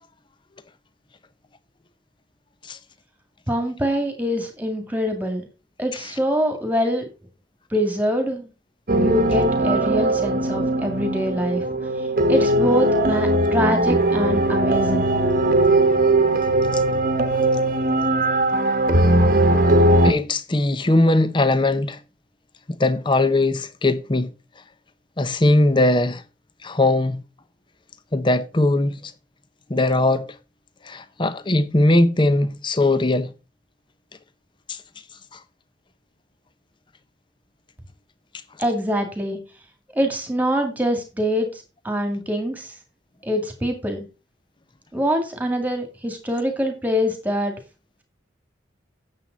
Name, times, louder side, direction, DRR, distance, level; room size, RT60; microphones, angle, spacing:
voice 1, 3.5-5.4 5.8-7.1 7.7-8.5 9.0-11.7 12.0-15.1 38.6-39.4 40.0-42.7 43.2-44.1 44.9-47.5, equal, 10° right, 2.1 m, -24 dB
sound 1, 8.9-20.1, right 1 dB, 45° right, 1.1 m, -19 dB
voice 2, 20.0-22.0 22.8-24.3 25.2-26.2 26.6-27.2 28.1-29.1 29.7-30.3 30.8-33.3 34.7-34.8 35.3-35.4, left 2 dB, 25° left, 0.6 m, -20 dB
9.4 x 7.4 x 4.0 m
head